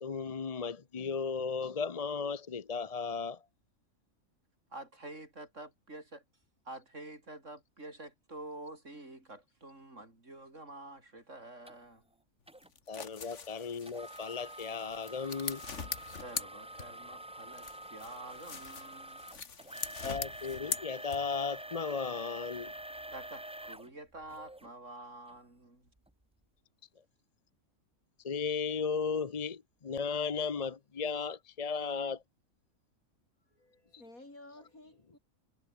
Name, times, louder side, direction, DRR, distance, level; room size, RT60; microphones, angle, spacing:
voice 1, 0.0-3.4 12.9-15.6 20.0-22.7 28.2-32.2, left 5 dB, 35° left, 0.7 m, -35 dB
voice 2, 4.7-6.2 6.6-12.0 16.2-19.3 23.1-25.9, right 2 dB, 60° right, 6.3 m, -48 dB
sound 1, 11.7-11.8 12.5-12.7 13.9-24.7 25.3-25.4 26.0-26.1, right 1 dB, 10° right, 0.3 m, -47 dB
sound 2, 12.6-17.2 17.5-21.5, left 5 dB, 60° left, 2.0 m, -42 dB
voice 3, 33.5-35.2, left 2 dB, 85° left, 8.2 m, -54 dB
omnidirectional pair, 1.4 m